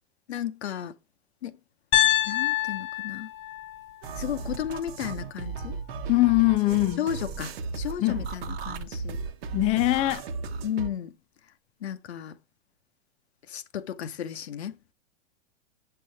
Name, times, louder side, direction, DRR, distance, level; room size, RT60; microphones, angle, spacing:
voice 1, 0.3-0.9 1.4-1.6 2.3-3.3 4.2-5.8 7.0-9.2 10.6-11.1 11.8-12.4 13.5-14.8, left 9 dB, 85° left, 0.8 m, -34 dB
Piano, 1.9-6.0, left 14 dB, 40° left, 1.0 m, -28 dB
sound 1, 4.0-10.9, right 4 dB, 70° right, 1.1 m, -35 dB
voice 2, 6.1-7.1 8.0-8.2 9.5-10.2, left 20 dB, 20° left, 0.4 m, -22 dB
7.4 x 6.8 x 2.7 m
hypercardioid pair, 120°, 31 cm